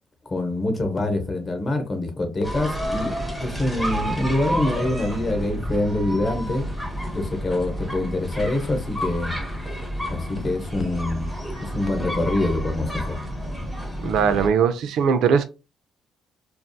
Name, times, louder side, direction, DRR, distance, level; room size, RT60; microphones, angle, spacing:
voice 1, 0.3-3.1 3.4-6.6 7.1-9.4 10.1-11.3 11.6-13.2, left 2 dB, 35° left, 0.8 m, -25 dB
sound 1, 2.4-14.5, equal, 5° left, 1.0 m, -30 dB
voice 2, 14.0-15.4, right 7 dB, 80° right, 0.3 m, -20 dB
2.6 x 2.3 x 2.2 m
cardioid pair, 90°, 0 cm